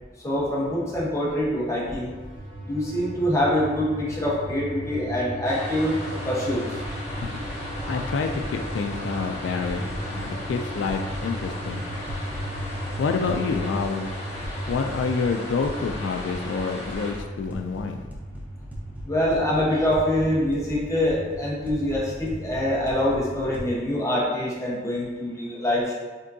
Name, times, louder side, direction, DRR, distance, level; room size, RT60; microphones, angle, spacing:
voice 1, 0.2-2.1 2.6-6.0 6.2-6.6 19.0-25.9, left 1 dB, 15° left, -6 dB, 1.0 m, -25 dB
sound 1, 2.1-15.3, equal, 50° right, 0.9 m, -36 dB
sound 2, 5.4-17.1, left 1 dB, 40° left, 1.3 m, -37 dB
sound 3, 6.8-23.6, equal, 10° right, 0.6 m, -38 dB
voice 2, 7.9-11.8 13.0-14.1 14.7-18.1, left 5 dB, 80° left, 5 dB, 0.3 m, -28 dB
5.2 x 3.5 x 2.7 m, 1.3 s
head